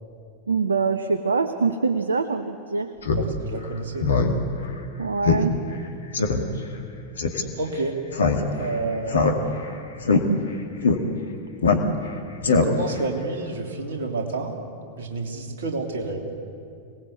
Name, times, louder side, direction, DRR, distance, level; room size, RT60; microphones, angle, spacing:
voice 1, 0.5-2.9 5.0-5.6, right 4 dB, 75° right, 10 dB, 0.9 m, -24 dB
Speech synthesizer, 3.0-3.2 3.6-3.7 4.0-4.3 4.7-4.8 5.2-5.4 5.7-5.8 6.1-6.4 7.2-7.4 8.1-8.7 9.1-9.7 10.0-10.2 10.8-11.0 11.6-12.1 12.4-13.0, left 4 dB, 70° left, 2.2 m, -20 dB
voice 2, 3.1-4.1 7.6-7.9 8.5-9.5 12.4-14.6 15.0-16.3, right 3 dB, 60° right, 2 dB, 3.3 m, -29 dB
27.0 x 19.0 x 8.4 m, 2.4 s
figure-of-eight pair, 90°, 0 cm